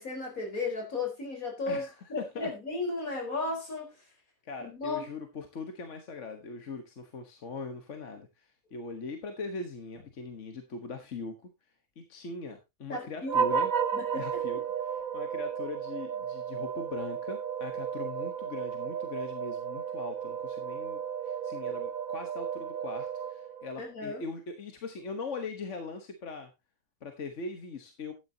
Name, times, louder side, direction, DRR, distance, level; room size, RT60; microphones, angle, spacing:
voice 1, 0.0-3.9 4.6-5.1 12.9-13.3 13.9-14.4 23.8-24.2, left 3 dB, 75° left, 4.7 m, -35 dB
voice 2, 1.6-2.5 4.4-11.3 12.0-13.7 14.1-26.5 27.0-28.1, left 4 dB, 55° left, 1.5 m, -41 dB
sound 1, 13.3-23.8, right 7 dB, 70° right, 1.4 m, -33 dB
12.0 x 10.0 x 2.8 m
omnidirectional pair, 1.5 m